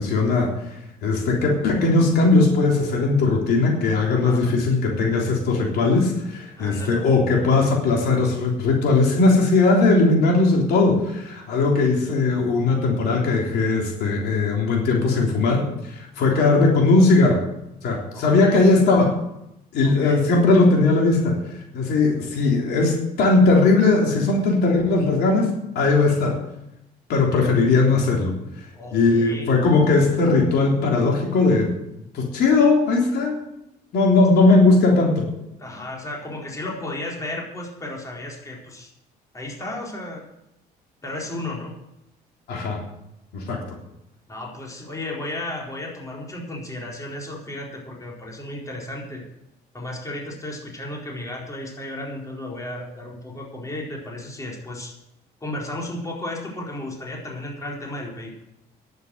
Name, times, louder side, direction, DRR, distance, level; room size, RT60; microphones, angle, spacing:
voice 1, 0.0-17.4 17.8-19.2 19.7-26.4 27.1-28.6 28.9-31.7 32.1-33.4 33.9-35.3 42.5-42.8 43.3-43.6, left 3 dB, 75° left, 0 dB, 3.6 m, -19 dB
voice 2, 4.2-4.6 6.6-7.0 16.2-16.5 18.1-18.6 19.8-20.2 28.7-29.5 35.6-38.9 39.3-40.2 41.0-41.7 44.3-49.2 49.7-54.9 55.4-58.3, left 1 dB, 20° left, -2 dB, 4.2 m, -34 dB
11.0 x 9.3 x 7.9 m, 0.85 s
cardioid pair, 110°, 17 cm